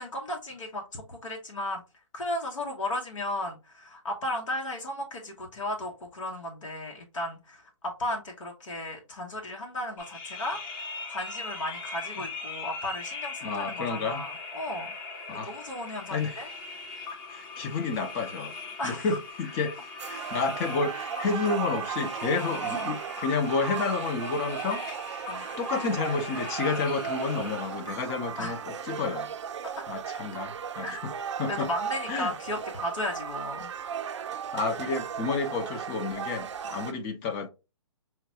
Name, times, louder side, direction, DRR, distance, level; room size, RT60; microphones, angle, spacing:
voice 1, 0.0-1.8 2.1-10.6 11.1-14.9 15.3-16.5 18.8-19.1 25.3-25.4 28.4-28.6 30.8-31.0 31.5-33.7 36.7-36.9, left 1 dB, 80° left, 1.1 m, -35 dB
sound 1, 10.0-27.8, left 4 dB, 45° left, 1.2 m, -41 dB
voice 2, 13.4-14.2 15.3-15.5 16.1-16.4 17.1-18.5 18.8-19.8 20.0-25.3 25.6-29.3 29.9-31.1 31.4-31.7 32.1-32.3 34.5-37.5, left 4 dB, 20° left, 0.5 m, -30 dB
sound 2, 20.0-36.9, right 8 dB, 65° right, 0.5 m, -36 dB
5.6 x 2.2 x 2.7 m
hypercardioid pair, 150°, 16 cm